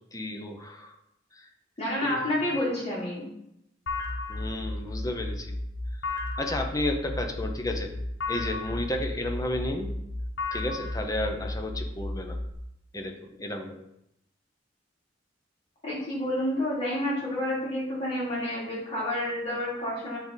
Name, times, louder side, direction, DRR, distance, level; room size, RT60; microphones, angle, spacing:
voice 1, 0.1-0.9 1.4-1.5 2.0-2.2 4.3-5.6 6.4-7.9 8.3-9.9 10.5-12.4 12.9-13.8, left 1 dB, 20° left, 4 dB, 0.7 m, -32 dB
voice 2, 1.8-3.2 15.8-20.2, left 1 dB, 35° left, -6 dB, 2.7 m, -29 dB
sound 1, 3.9-12.5, left 2 dB, 75° left, 1.0 m, -34 dB
8.4 x 3.6 x 4.0 m, 0.80 s
head